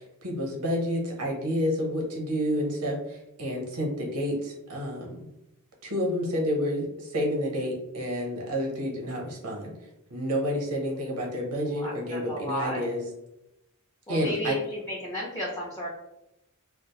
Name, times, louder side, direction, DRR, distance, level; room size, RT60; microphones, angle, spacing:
voice 1, 0.0-5.2 5.8-9.7 10.1-13.0 14.1-14.6, equal, 85° right, -1 dB, 0.7 m, -29 dB
voice 2, 11.7-12.8 14.1-15.9, equal, 15° left, -5 dB, 0.4 m, -33 dB
2.3 x 2.0 x 2.8 m, 0.86 s
head